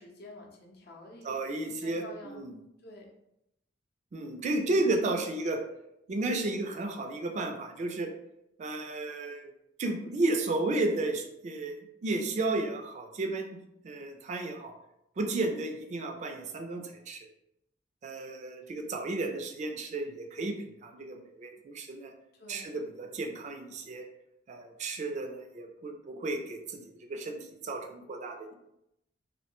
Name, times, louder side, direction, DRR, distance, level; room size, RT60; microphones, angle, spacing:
voice 1, 0.0-1.5 1.8-2.4 2.8-3.1 4.6-4.8 22.3-22.7, left 2 dB, 60° left, 0 dB, 0.6 m, -48 dB
voice 2, 1.2-2.5 4.1-5.6 6.1-8.1 8.6-9.5 9.8-13.6 13.8-14.7 15.2-17.2 18.0-20.6 20.8-22.1 22.5-24.0 24.5-28.5, right 2 dB, 40° right, 4 dB, 0.3 m, -33 dB
2.5 x 2.1 x 2.9 m, 0.83 s
head